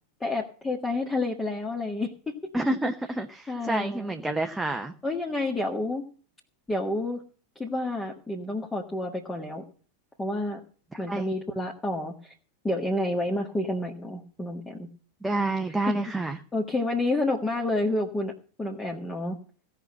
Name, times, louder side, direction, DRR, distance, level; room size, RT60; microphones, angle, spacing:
voice 1, 0.2-2.3 3.5-4.1 5.0-6.0 6.7-7.2 7.6-9.6 10.2-10.6 11.0-12.3 12.6-14.9 16.2-18.3 18.6-19.4, left 2 dB, 10° left, 0 dB, 1.6 m, -29 dB
voice 2, 2.5-4.9 11.1-11.3 15.2-16.4, right 2 dB, 5° right, 5 dB, 0.8 m, -28 dB
16.0 x 5.9 x 8.7 m, 0.42 s
figure-of-eight pair, 90°, 0 cm